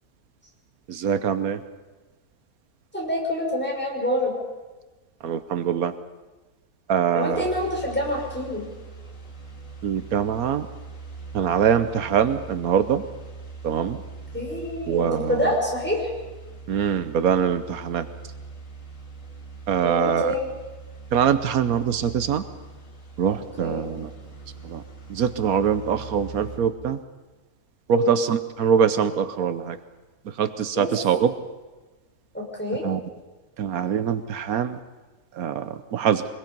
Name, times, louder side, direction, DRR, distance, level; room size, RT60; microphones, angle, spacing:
voice 1, 0.9-1.6 5.2-5.9 6.9-7.4 9.8-10.7 11.3-13.0 13.6-14.0 14.9-15.4 16.7-18.1 19.7-20.3 21.1-22.5 23.2-24.1 24.6-24.8 25.1-27.0 27.9-29.8 30.3-31.3 32.8-33.0 33.6-34.8 35.4-36.2, right 8 dB, 85° right, 11 dB, 1.3 m, -23 dB
voice 2, 2.9-4.3 7.1-8.6 14.3-16.1 19.8-20.5 23.6-23.8 27.9-28.1 30.8-30.9 32.3-32.8, left 1 dB, 5° left, -2 dB, 5.6 m, -26 dB
sound 1, 7.3-26.6, right 4 dB, 65° left, 2.5 m, -41 dB
24.0 x 21.5 x 5.4 m, 1.2 s
omnidirectional pair, 1.5 m